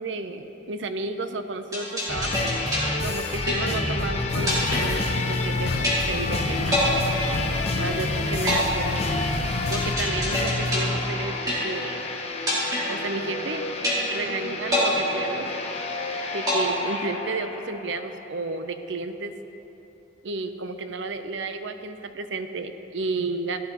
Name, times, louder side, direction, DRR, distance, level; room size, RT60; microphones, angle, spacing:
voice 1, 0.0-2.5 3.0-6.8 7.8-9.2 9.7-12.0 12.9-13.7 14.1-15.5 16.3-19.4 20.2-23.6, right 3 dB, 70° right, 8 dB, 0.6 m, -32 dB
sound 1, 1.7-4.0 4.5-5.5 5.8-6.4 6.7-8.0 8.5-12.0 12.5-13.5 13.8-14.4 14.7-16.0 16.5-17.5, left 1 dB, 20° right, 2.4 m, -27 dB
sound 2, 2.1-18.1 18.4-18.5, left 2 dB, 35° left, 0.8 m, -29 dB
sound 3, 4.3-9.9, left 4 dB, 55° left, 0.3 m, -33 dB
15.5 x 11.0 x 2.9 m, 3.0 s
head